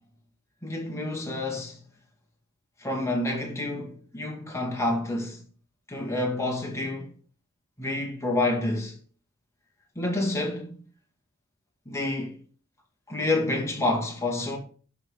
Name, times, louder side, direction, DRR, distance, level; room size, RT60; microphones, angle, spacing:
voice 1, 0.6-1.8 2.8-5.4 5.9-7.1 7.8-9.0 10.0-10.7 11.9-12.4 13.1-14.6, left 2 dB, 15° left, 2.1 m, -28 dB
11.5 x 5.1 x 3.8 m
head